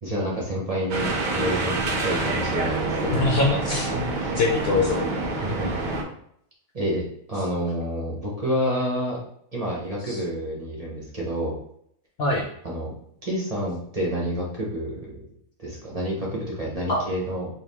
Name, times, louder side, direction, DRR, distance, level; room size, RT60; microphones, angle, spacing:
voice 1, 0.0-1.8 2.0-3.6 3.9-4.3 5.4-5.7 6.7-9.2 9.5-11.5 12.6-12.9 13.2-17.5, equal, 30° right, -4 dB, 1.0 m, -29 dB
sound 1, 0.9-6.0, right 2 dB, 50° right, 0.6 m, -27 dB
voice 2, 3.1-3.9 4.4-5.1 10.0-10.2 12.2-12.4 16.9-17.0, left 2 dB, 60° left, 1 dB, 0.7 m, -23 dB
4.7 x 2.4 x 3.5 m, 0.69 s
omnidirectional pair, 1.4 m